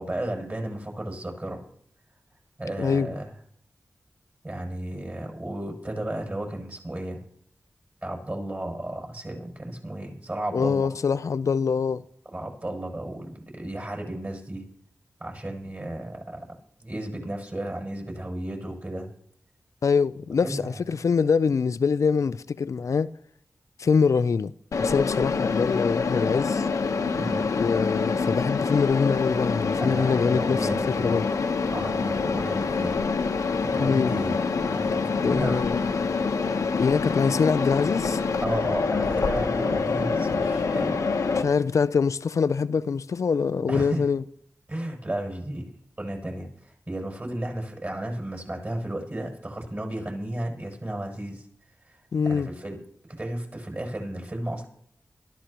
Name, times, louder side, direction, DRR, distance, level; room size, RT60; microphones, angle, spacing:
voice 1, 0.0-1.6 2.6-3.3 4.4-7.2 8.0-10.9 12.3-14.7 15.2-16.5 16.8-19.1 20.4-20.7 27.2-27.5 29.8-31.2 31.7-33.0 33.6-34.4 34.6-35.7 38.4-41.0 43.7-44.0 44.7-45.7 46.0-51.5 51.8-52.8 53.2-54.7, right 1 dB, 35° right, 7.1 m, -33 dB
voice 2, 2.8-3.1 10.5-12.0 19.8-23.1 23.8-24.5 24.8-26.7 27.5-30.6 30.9-31.3 33.8-34.1 35.2-35.8 36.8-38.2 41.4-44.2 52.1-52.5, left 5 dB, 75° left, 0.5 m, -24 dB
Mechanisms, 24.7-41.4, left 4 dB, 90° left, 1.1 m, -26 dB
23.0 x 13.5 x 3.0 m
cardioid pair, 45°, 5 cm